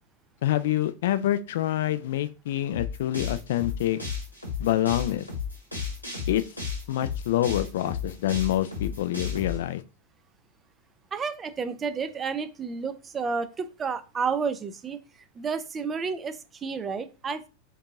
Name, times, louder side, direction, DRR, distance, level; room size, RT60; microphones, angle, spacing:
voice 1, 0.4-4.0 4.6-5.2 6.3-6.4 6.9-9.8, left 13 dB, 55° left, 0.4 m, -26 dB
sound 1, 2.7-9.6, left 5 dB, 90° right, 1.6 m, -33 dB
voice 2, 11.1-15.0 15.4-17.5, right 5 dB, 20° right, 0.5 m, -31 dB
4.6 x 2.8 x 3.7 m
figure-of-eight pair, 90°, 0 cm